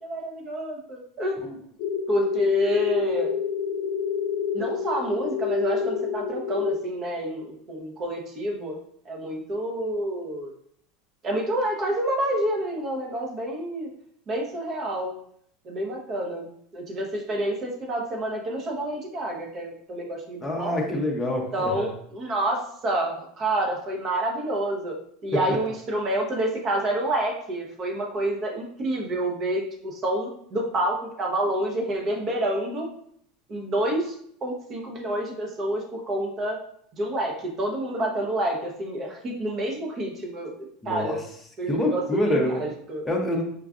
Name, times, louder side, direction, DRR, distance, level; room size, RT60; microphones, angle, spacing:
voice 1, 0.0-1.6 2.1-3.3 4.5-8.8 9.0-10.5 11.2-13.9 14.3-15.1 15.6-21.0 21.5-32.9 33.5-34.1 34.4-36.6 36.9-41.2 41.6-43.0, right 1 dB, 35° right, 1 dB, 0.8 m, -28 dB
sound 1, 1.8-6.8, left 7 dB, 60° left, 0.5 m, -27 dB
voice 2, 20.4-21.9 25.5-25.6 40.8-41.2 41.7-42.7 43.0-43.4, left 1 dB, 10° left, -2 dB, 0.7 m, -26 dB
4.6 x 2.4 x 2.4 m, 0.67 s
supercardioid pair, 110°, 0 cm